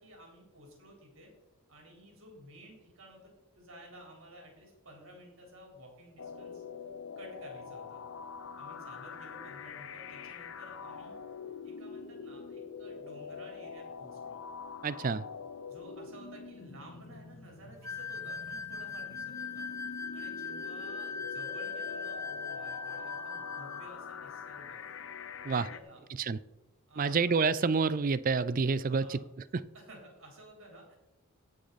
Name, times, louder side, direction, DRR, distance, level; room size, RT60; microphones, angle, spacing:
voice 1, 0.0-1.3 1.7-6.6 7.2-8.0 8.5-11.1 11.6-14.4 15.7-24.8 25.4-26.0 26.9-27.3 28.9-29.2 29.7-31.0, equal, 60° right, 0 dB, 4.0 m, -53 dB
sound 1, 6.2-25.8, left 5 dB, 60° left, 0.7 m, -45 dB
voice 2, 14.8-15.2 25.4-25.7 26.2-26.4 27.0-29.2 29.5-29.6, right 4 dB, 40° right, 17 dB, 0.4 m, -28 dB
sound 2, 17.8-23.9, left 5 dB, 15° left, 0.5 m, -39 dB
18.0 x 6.3 x 4.1 m, 0.98 s
head